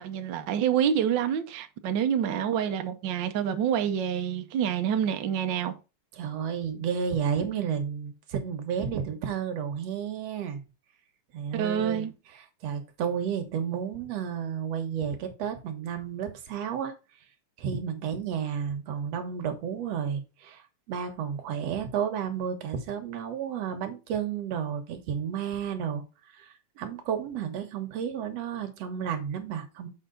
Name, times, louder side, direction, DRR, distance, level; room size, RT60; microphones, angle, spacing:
voice 1, 0.0-5.7 11.5-12.1, right 9 dB, 80° right, 1.0 m, -27 dB
voice 2, 6.2-10.6 11.3-12.1 12.3-16.9 17.6-20.6 20.9-26.0 26.3-29.9, right 7 dB, 65° right, 2.3 m, -32 dB
7.2 x 5.7 x 3.8 m
omnidirectional pair, 3.3 m